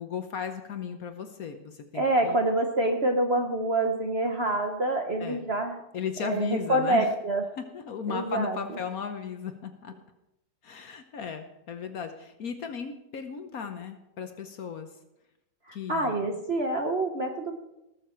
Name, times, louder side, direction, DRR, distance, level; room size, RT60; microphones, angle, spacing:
voice 1, 0.0-2.4 5.2-5.4 5.9-7.1 7.6-9.9 10.6-14.9 15.7-16.2, left 6 dB, 55° left, 7 dB, 1.2 m, -36 dB
voice 2, 1.9-5.8 6.2-7.4 8.1-8.8 15.7-17.6, right 2 dB, 45° right, 3 dB, 0.9 m, -27 dB
19.0 x 7.1 x 4.4 m, 0.89 s
omnidirectional pair, 2.1 m